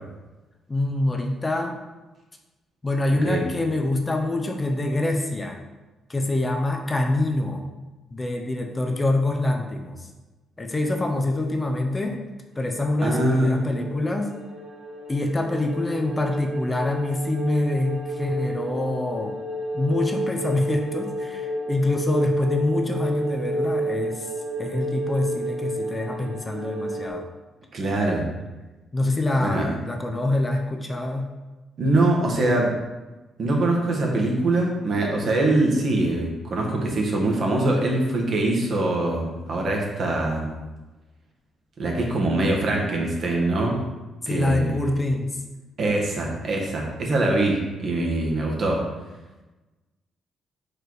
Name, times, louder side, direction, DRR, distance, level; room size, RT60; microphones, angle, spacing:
voice 1, 0.7-1.8 2.8-5.6 6.1-7.6 8.1-10.1 10.6-12.2 12.6-14.4 15.1-19.3 19.7-24.3 24.6-27.3 28.9-31.3 44.2-45.4, left 2 dB, 20° left, 2 dB, 0.7 m, -25 dB
voice 2, 13.0-13.6 27.7-28.2 29.4-29.7 31.8-32.7 33.4-40.5 41.8-43.8 44.3-44.8 45.8-48.8, right 2 dB, 55° right, -1 dB, 1.6 m, -23 dB
sound 1, 13.0-27.1, right 1 dB, 80° right, 1.9 m, -31 dB
5.0 x 4.6 x 4.7 m, 1.1 s
cardioid pair, 90°, 0 cm